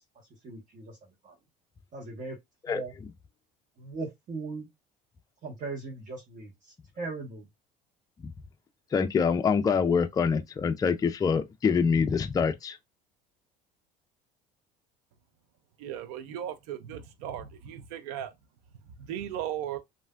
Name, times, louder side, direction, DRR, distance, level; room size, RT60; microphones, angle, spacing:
voice 1, 0.4-1.0 1.2-1.3 1.9-2.4 2.7-2.9 3.8-4.7 5.4-7.4, right 3 dB, 40° right, 1.1 m, -38 dB
voice 2, 8.9-12.8, left 6 dB, 20° left, 0.4 m, -25 dB
voice 3, 15.8-18.3 19.0-19.8, right 10 dB, 80° right, 0.5 m, -36 dB
3.2 x 2.5 x 2.3 m
supercardioid pair, 90°, 19 cm